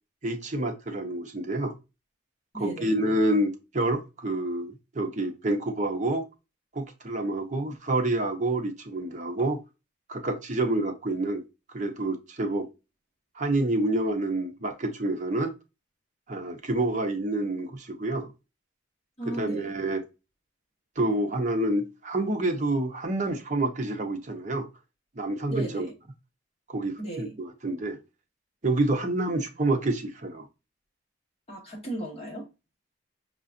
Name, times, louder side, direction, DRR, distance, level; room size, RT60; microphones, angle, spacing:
voice 1, 0.2-1.7 2.6-6.3 6.7-9.6 10.1-11.4 11.7-12.7 13.4-15.5 16.3-18.3 19.3-20.0 21.0-24.7 25.2-25.9 26.7-28.0 28.6-30.5, right 2 dB, 40° right, 0.7 m, -28 dB
voice 2, 2.5-2.9 19.2-19.7 25.5-25.9 27.0-27.4 31.5-32.5, right 1 dB, 30° left, 1.3 m, -36 dB
5.6 x 2.4 x 2.5 m
head